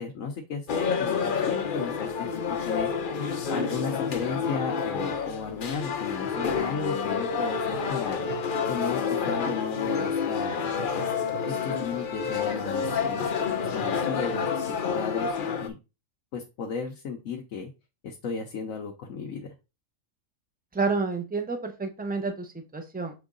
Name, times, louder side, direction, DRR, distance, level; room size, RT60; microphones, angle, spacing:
voice 1, 0.0-2.9 3.5-8.2 8.7-11.1 11.5-15.8 16.3-17.7 18.0-19.5, left 5 dB, 70° left, 2 dB, 1.2 m, -35 dB
sound 1, 0.7-15.7, left 6 dB, 50° left, 0.7 m, -29 dB
sound 2, 7.5-15.1, right 5 dB, 45° right, 0.7 m, -44 dB
voice 2, 20.7-23.1, right 4 dB, 10° right, 6 dB, 0.7 m, -29 dB
7.0 x 3.6 x 3.8 m, 0.28 s
omnidirectional pair, 1.4 m